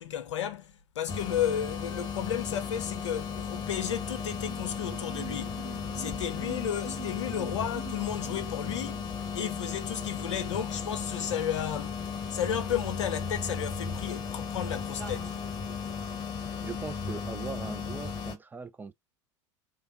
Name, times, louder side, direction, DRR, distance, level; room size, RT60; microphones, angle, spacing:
voice 1, 0.0-5.6 5.9-9.1 9.3-12.0 12.3-15.3, left 9 dB, 70° left, 0.7 m, -33 dB
sound 1, 1.1-18.4, left 6 dB, 25° left, 0.8 m, -35 dB
sound 2, 4.4-9.2 10.3-10.4 10.7-10.8 11.1-11.2 11.6-11.7 15.0-15.5, right 8 dB, 45° right, 2.0 m, -46 dB
voice 2, 16.6-18.9, right 4 dB, 10° right, 0.4 m, -40 dB
3.3 x 2.1 x 3.7 m
figure-of-eight pair, 75°, 16 cm